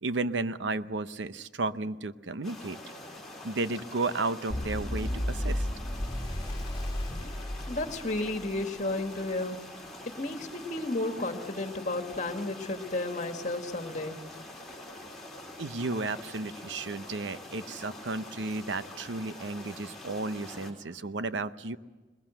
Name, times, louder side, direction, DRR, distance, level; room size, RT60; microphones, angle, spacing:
voice 1, 0.0-2.8 3.4-5.7 15.6-21.8, right 3 dB, 80° right, 13 dB, 0.8 m, -33 dB
sound 1, 2.4-20.7, left 1 dB, ahead, 3.6 m, -45 dB
sound 2, 4.5-8.6, left 1 dB, 25° left, 1.8 m, -33 dB
voice 2, 7.7-9.6 10.1-14.2, left 2 dB, 40° left, 5 dB, 1.9 m, -32 dB
21.0 x 21.0 x 7.7 m, 1.2 s
head